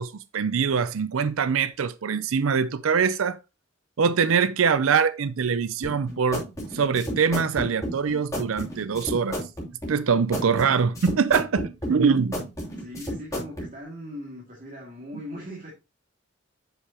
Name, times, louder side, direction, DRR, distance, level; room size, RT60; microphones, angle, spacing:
voice 1, 0.0-3.4 4.0-6.4 6.7-9.4 9.9-12.5, right 6 dB, 80° right, 0.5 m, -23 dB
sound 1, 5.8-13.7, equal, 15° left, 2.8 m, -32 dB
voice 2, 12.8-15.7, equal, 40° right, 2.2 m, -39 dB
7.9 x 6.7 x 2.8 m
head